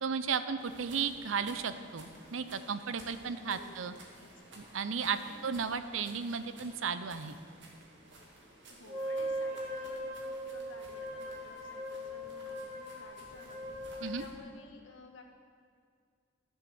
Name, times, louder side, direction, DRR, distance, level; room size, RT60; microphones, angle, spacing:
voice 1, 0.0-3.9 4.6-5.2 5.4-7.4 14.0-14.2, right 6 dB, 85° right, 11 dB, 0.6 m, -34 dB
sound 1, 0.6-14.3, right 1 dB, 65° right, 2.2 m, -55 dB
voice 2, 3.4-4.3 5.2-5.5 8.7-15.2, left 2 dB, 70° left, 3 dB, 1.5 m, -54 dB
Wind instrument woodwind instrument, 8.9-14.5, equal, 35° right, 3.7 m, -40 dB
12.0 x 7.4 x 7.0 m, 2.1 s
head